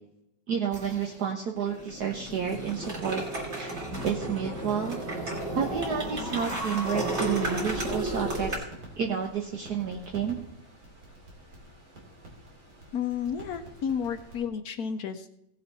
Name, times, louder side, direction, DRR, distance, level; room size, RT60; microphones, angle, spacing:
voice 1, 0.5-3.2 3.5-3.7 4.0-5.0 5.5-8.7 9.0-10.4, right 7 dB, 60° right, 1 dB, 1.6 m, -30 dB
sound 1, 0.7-1.2 1.6-8.6, right 1 dB, 35° right, 2.8 m, -33 dB
sound 2, 6.2-14.5, right 1 dB, 85° right, 3.7 m, -49 dB
voice 2, 12.9-15.3, left 7 dB, 65° left, 9 dB, 1.1 m, -31 dB
17.0 x 7.3 x 4.1 m, 0.80 s
omnidirectional pair, 2.0 m